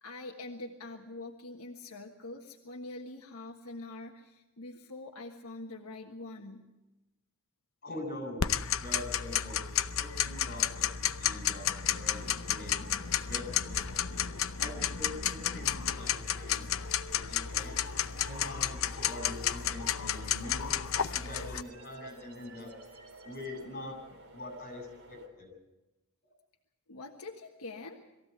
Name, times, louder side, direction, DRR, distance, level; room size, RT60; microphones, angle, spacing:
voice 1, 0.0-6.7 26.9-28.0, left 2 dB, 90° left, 1 dB, 1.5 m, -44 dB
voice 2, 7.8-12.9 13.3-14.0 14.6-17.8 18.2-20.8 21.1-22.7 23.2-24.0 24.3-25.5, left 1 dB, 45° left, 4 dB, 7.7 m, -44 dB
Tick-tock, 8.4-21.6, left 9 dB, 65° left, 0.7 m, -32 dB
sound 1, 12.1-25.3, right 1 dB, 70° right, 3.6 m, -54 dB
sound 2, 15.6-23.6, right 4 dB, 85° right, 2.7 m, -57 dB
22.5 x 15.5 x 8.1 m, 1.0 s
head